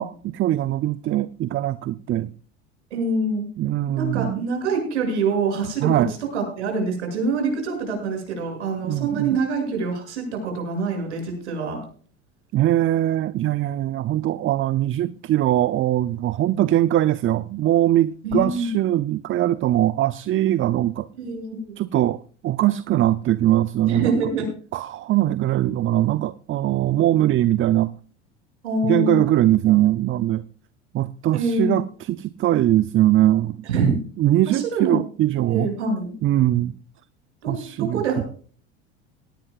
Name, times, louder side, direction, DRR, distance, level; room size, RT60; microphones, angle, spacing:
voice 1, 0.0-2.3 3.6-4.4 5.8-6.1 8.8-9.4 12.5-21.1 21.8-24.2 24.7-27.9 28.8-30.4 30.9-35.7 36.2-36.7 37.5-38.0, right 13 dB, 35° right, 0.6 m, -21 dB
voice 2, 2.9-3.5 4.0-6.0 6.3-11.8 18.2-18.7 21.2-21.8 23.9-24.4 28.6-29.3 31.3-31.8 33.6-34.0 34.5-35.0 35.5-36.1 37.4-38.2, right 3 dB, 85° right, 7.4 m, -25 dB
18.5 x 18.0 x 2.4 m
hypercardioid pair, 75°, 34 cm